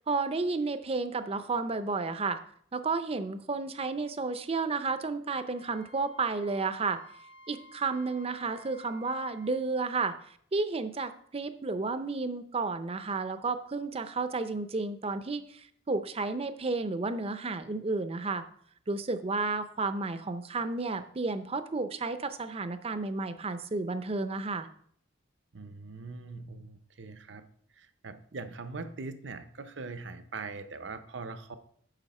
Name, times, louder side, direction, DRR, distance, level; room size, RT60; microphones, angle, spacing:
voice 1, 0.1-2.4 2.7-7.0 7.5-10.2 10.5-18.4 18.9-24.7, right 3 dB, 30° right, 11 dB, 0.6 m, -32 dB
Wind instrument woodwind instrument, 5.5-9.6, equal, 70° left, 1.5 m, -54 dB
voice 2, 25.5-27.5 27.7-31.6, right 3 dB, 65° right, 10 dB, 0.7 m, -42 dB
9.0 x 6.3 x 4.2 m, 0.62 s
head